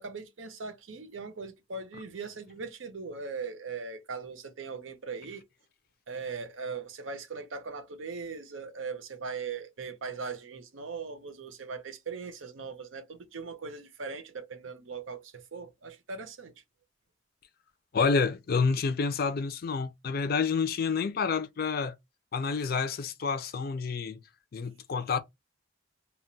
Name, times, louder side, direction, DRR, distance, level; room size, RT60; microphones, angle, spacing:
voice 1, 0.0-5.4 6.1-16.5, right 4 dB, 80° right, 0.7 m, -39 dB
voice 2, 17.9-22.0 22.3-24.2 24.5-25.2, left 5 dB, 50° left, 0.4 m, -28 dB
2.2 x 2.1 x 3.8 m
head